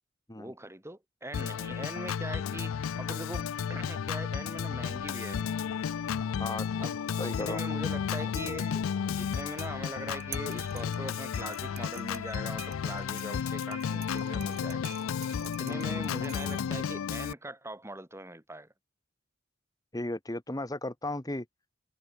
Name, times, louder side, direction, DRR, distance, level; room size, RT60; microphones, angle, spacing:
voice 1, 0.4-5.5 6.8-14.9 15.4-18.7, right 1 dB, 15° right, 6.9 m, -42 dB
Organ, 1.3-17.3, left 7 dB, 90° left, 0.4 m, -33 dB
voice 2, 7.2-7.6 15.7-16.0 19.9-21.4, left 1 dB, 20° left, 1.6 m, -35 dB
sound 1, 9.3-16.9, right 13 dB, 55° right, 6.5 m, -50 dB
head